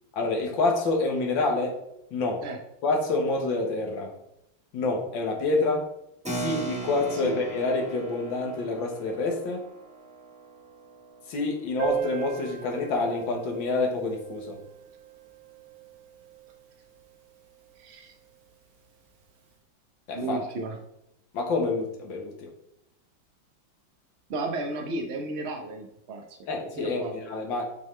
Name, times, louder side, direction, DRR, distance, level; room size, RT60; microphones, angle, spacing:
voice 1, 0.1-1.8 2.1-2.4 2.8-4.2 4.7-5.9 6.3-9.7 11.3-14.6 20.1-20.4 21.3-22.5 26.5-27.7, left 3 dB, 70° left, 1 dB, 1.9 m, -27 dB
Keyboard (musical), 6.2-12.3, right 3 dB, 5° right, 0.6 m, -38 dB
Piano, 11.8-17.2 17.4-17.5 17.7-17.9 18.2-18.3 19.1-19.2, right 9 dB, 55° right, 1.1 m, -37 dB
voice 2, 17.8-18.1 20.1-20.8 24.3-26.4 26.8-27.2, right 2 dB, 70° right, 3 dB, 0.6 m, -33 dB
10.5 x 3.6 x 3.2 m, 0.82 s
omnidirectional pair, 2.2 m